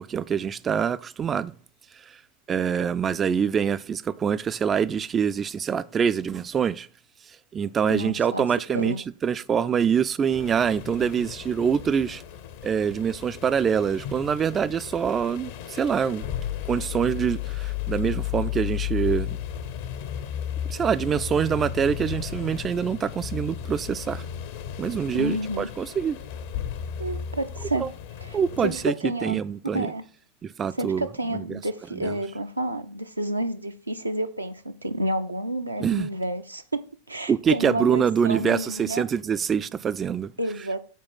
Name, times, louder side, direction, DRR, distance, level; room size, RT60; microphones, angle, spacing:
voice 1, 0.0-1.5 2.1-2.2 2.5-6.9 7.5-9.0 9.2-12.2 12.6-16.2 16.7-19.4 20.7-24.2 24.8-26.2 27.8-27.9 28.3-29.9 30.4-31.1 31.3-31.6 32.0-32.1 35.8-36.1 37.3-40.3, right 7 dB, 20° right, 0.3 m, -25 dB
voice 2, 7.9-8.4 8.7-9.0 25.1-25.7 27.0-27.9 28.2-29.4 29.7-30.0 30.7-39.0 40.4-40.8, right 1 dB, 85° right, 0.5 m, -30 dB
sound 1, 10.3-28.9, left 10 dB, 50° left, 0.7 m, -34 dB
7.3 x 4.3 x 5.7 m
figure-of-eight pair, 90°, 0 cm